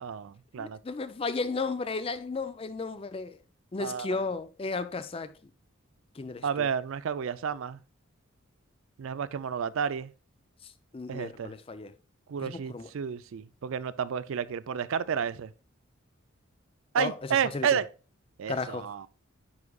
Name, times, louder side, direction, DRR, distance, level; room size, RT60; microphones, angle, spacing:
voice 1, 0.0-0.8 3.8-4.2 6.4-7.8 9.0-10.1 11.1-11.5 12.3-15.5 16.9-17.9 18.4-19.1, right 7 dB, 65° right, 0.4 m, -31 dB
voice 2, 0.6-3.4 3.7-5.3 6.2-6.7 10.9-11.9 12.4-12.9 17.0-17.1 17.5-17.7 18.5-19.1, left 3 dB, 25° left, 0.3 m, -34 dB
9.5 x 4.9 x 2.3 m
head